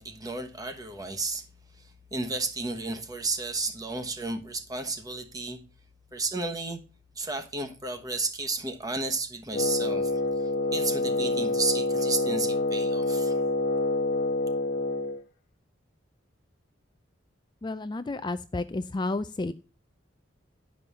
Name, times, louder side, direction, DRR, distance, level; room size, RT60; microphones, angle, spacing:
voice 1, 0.0-1.5 1.8-5.6 6.1-6.8 7.2-10.2 10.7-13.4, right 3 dB, 20° right, 1.2 m, -32 dB
Wind instrument woodwind instrument, 9.5-15.2, left 2 dB, 50° left, 1.2 m, -27 dB
voice 2, 17.6-19.5, left 2 dB, 25° left, 0.4 m, -31 dB
10.5 x 5.4 x 5.4 m
head